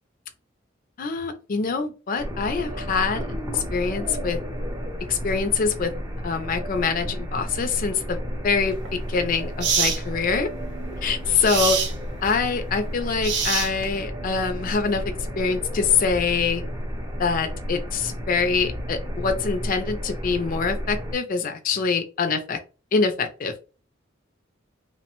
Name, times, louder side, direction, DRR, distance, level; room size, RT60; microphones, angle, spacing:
voice 1, 1.0-4.4 5.1-5.9 6.2-8.8 9.1-10.5 11.0-11.8 12.2-16.6 17.2-22.6 22.9-23.5, left 5 dB, 45° left, 7 dB, 0.4 m, -25 dB
sound 1, 2.2-21.2, equal, 15° right, 0.5 m, -32 dB
sound 2, 8.7-8.9 9.6-10.0 11.4-11.9 13.2-14.0, right 6 dB, 65° right, 0.5 m, -24 dB
3.0 x 2.1 x 2.9 m, 0.33 s
head